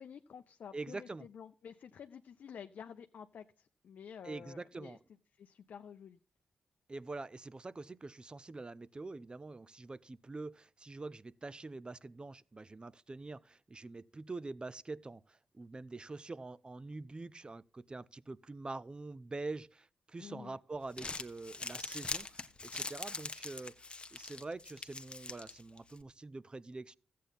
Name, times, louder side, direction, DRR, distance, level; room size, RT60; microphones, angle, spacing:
voice 1, 0.0-5.0 5.4-6.2 20.2-20.6, left 7 dB, 70° left, 0.5 m, -50 dB
voice 2, 0.7-1.3 4.2-5.0 6.9-23.8 24.1-27.0, right 3 dB, 30° right, 0.5 m, -45 dB
Crumpling crinkling, 20.7-26.0, left 3 dB, 35° left, 1.0 m, -43 dB
13.5 x 8.4 x 4.0 m
cardioid pair, 55°, 3 cm